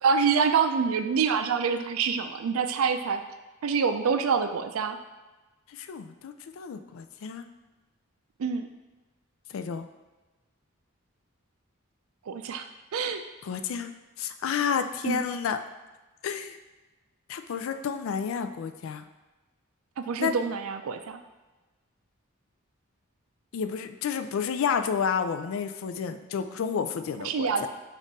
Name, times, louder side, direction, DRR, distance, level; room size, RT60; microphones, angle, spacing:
voice 1, 0.0-3.2 3.6-5.0 8.4-8.7 12.3-12.7 12.9-13.2 15.0-15.2 20.0-21.2 27.2-27.7, right 6 dB, 85° right, 8 dB, 0.4 m, -26 dB
voice 2, 5.7-7.4 9.5-9.9 13.4-13.9 14.2-15.6 16.2-16.6 17.3-19.0 20.2-20.3 23.5-27.7, left 7 dB, 75° left, 8 dB, 0.3 m, -30 dB
5.3 x 2.5 x 4.0 m, 1.2 s
head